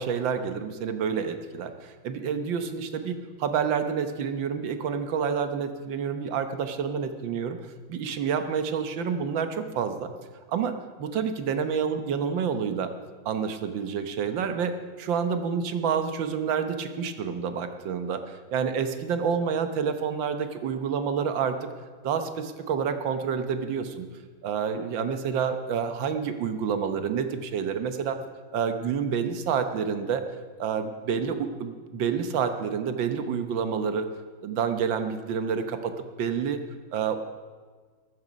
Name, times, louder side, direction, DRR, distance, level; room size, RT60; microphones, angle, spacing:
voice 1, 0.0-7.6 7.9-10.1 10.5-10.7 11.0-12.9 13.3-21.7 22.0-24.1 24.4-28.2 28.5-30.2 30.6-34.1 34.4-35.9 36.2-36.6 36.9-37.2, right 6 dB, 70° right, 8 dB, 1.7 m, -28 dB
14.5 x 13.0 x 5.2 m, 1.5 s
omnidirectional pair, 2.2 m